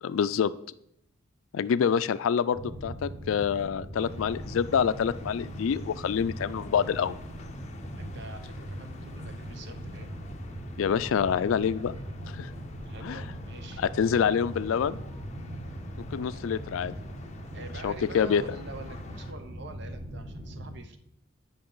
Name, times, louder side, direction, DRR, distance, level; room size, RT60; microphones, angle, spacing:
voice 1, 0.0-0.5 1.5-7.2 10.8-11.9 12.4-12.5 13.0-13.2 13.8-15.0 16.1-16.9 17.8-18.4, left 7 dB, 80° left, 15 dB, 0.3 m, -26 dB
sound 1, 2.5-20.8, right 1 dB, 15° right, 1.2 m, -40 dB
sound 2, 4.0-19.3, left 2 dB, 35° left, 0.6 m, -48 dB
voice 2, 8.0-10.1 12.8-13.8 17.5-21.0, right 3 dB, 55° right, 8 dB, 0.7 m, -46 dB
8.9 x 5.5 x 3.9 m, 0.75 s
head